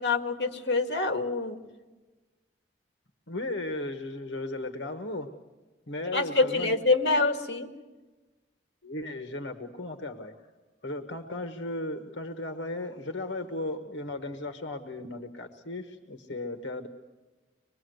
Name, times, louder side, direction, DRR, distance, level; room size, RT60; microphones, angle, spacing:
voice 1, 0.0-1.7 6.1-7.7, left 3 dB, 70° left, 5 dB, 1.9 m, -26 dB
voice 2, 3.3-5.3 5.9-6.8 8.8-10.4 10.8-16.9, left 2 dB, 90° left, 6 dB, 1.3 m, -36 dB
24.5 x 21.0 x 7.9 m, 1.2 s
head